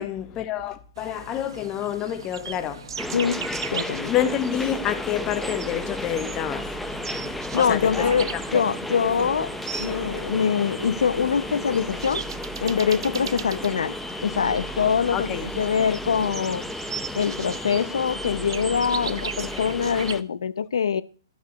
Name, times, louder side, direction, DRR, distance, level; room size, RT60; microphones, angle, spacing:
voice 1, 0.0-3.1 4.0-8.6 9.7-9.9 15.1-15.4, left 10 dB, 20° left, 1.0 m, -29 dB
sound 1, 1.0-20.1, right 7 dB, 80° right, 0.6 m, -39 dB
sound 2, 3.0-20.2, left 1 dB, ahead, 0.5 m, -33 dB
voice 2, 3.1-3.4 3.7-4.1 7.5-9.5 9.8-12.2 12.6-13.9 14.2-16.7 17.2-21.0, left 7 dB, 85° left, 0.7 m, -24 dB
12.0 x 4.9 x 7.9 m
hypercardioid pair, 160°, 2 cm